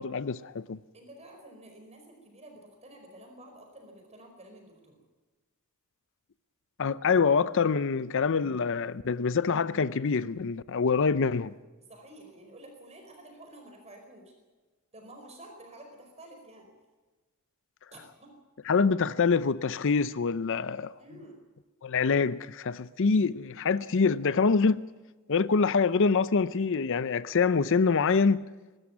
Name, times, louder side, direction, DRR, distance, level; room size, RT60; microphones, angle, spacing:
voice 1, 0.0-0.8 6.8-11.5 18.7-20.9 21.8-24.8 25.3-28.5, left 5 dB, 60° left, 0.6 m, -25 dB
voice 2, 0.9-5.0 11.9-14.3 14.9-16.7 17.9-18.4 18.7-18.8 21.0-21.4, right 1 dB, 30° right, 4.8 m, -50 dB
23.0 x 13.5 x 9.6 m
head